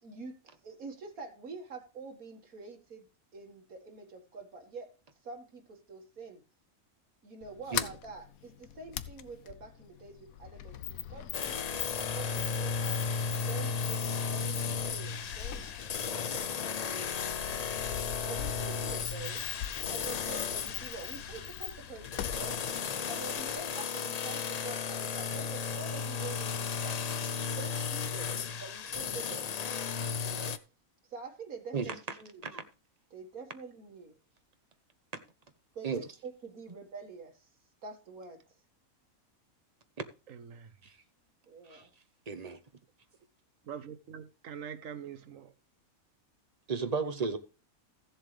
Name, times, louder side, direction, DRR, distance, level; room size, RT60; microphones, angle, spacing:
voice 1, 0.0-4.9 5.2-6.4 7.2-13.0 13.5-19.5 19.9-22.6 23.1-27.0 27.6-29.5 30.2-30.6 31.1-32.4 33.1-34.1 35.7-37.5 37.8-38.4 41.5-41.9, right 4 dB, 90° right, 2.2 m, -46 dB
Sliding door, 7.4-23.8, left 11 dB, 80° left, 1.1 m, -42 dB
sound 1, 11.3-30.6, left 6 dB, 60° left, 0.4 m, -35 dB
voice 2, 40.3-40.7 43.7-45.5, right 8 dB, 70° right, 1.3 m, -44 dB
voice 3, 42.3-42.6 46.7-47.4, right 5 dB, 30° right, 1.0 m, -33 dB
15.5 x 7.4 x 3.3 m
omnidirectional pair, 1.5 m